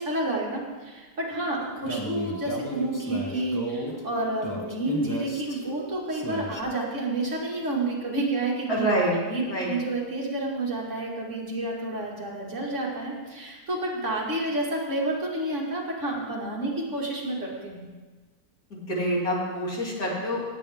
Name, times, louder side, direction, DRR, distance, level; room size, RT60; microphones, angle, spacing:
voice 1, 0.0-8.9 9.3-17.9, right 2 dB, 50° right, -3 dB, 2.4 m, -30 dB
sound 1, 1.6-6.6, equal, 15° left, 0.9 m, -34 dB
voice 2, 8.7-9.2 9.5-9.7 18.7-20.4, right 1 dB, 70° left, -4 dB, 3.1 m, -26 dB
17.5 x 8.7 x 3.6 m, 1.3 s
omnidirectional pair, 1.6 m